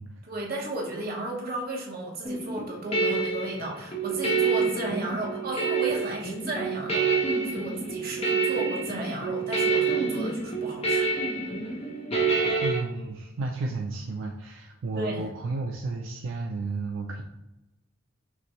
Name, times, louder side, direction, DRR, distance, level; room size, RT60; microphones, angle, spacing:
voice 1, 0.2-11.1 14.9-15.3, right 1 dB, 45° right, -2 dB, 1.0 m, -34 dB
sound 1, 2.3-12.8, right 4 dB, 30° left, 0.8 m, -27 dB
voice 2, 12.6-17.2, right 3 dB, 70° right, 2 dB, 0.4 m, -32 dB
5.8 x 2.6 x 3.0 m, 0.99 s
head